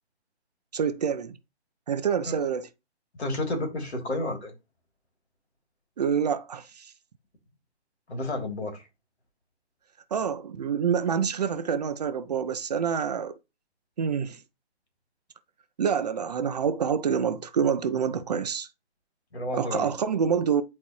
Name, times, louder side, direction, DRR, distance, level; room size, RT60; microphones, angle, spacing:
voice 1, 0.7-1.4 1.9-2.7 6.0-6.9 10.1-13.4 14.0-14.4 15.8-18.7 19.5-20.6, right 7 dB, 35° right, 0.6 m, -27 dB
voice 2, 3.2-4.5 8.1-8.9 19.3-19.9, left 1 dB, 70° left, 3.3 m, -31 dB
10.0 x 4.3 x 3.1 m
figure-of-eight pair, 145°, 34 cm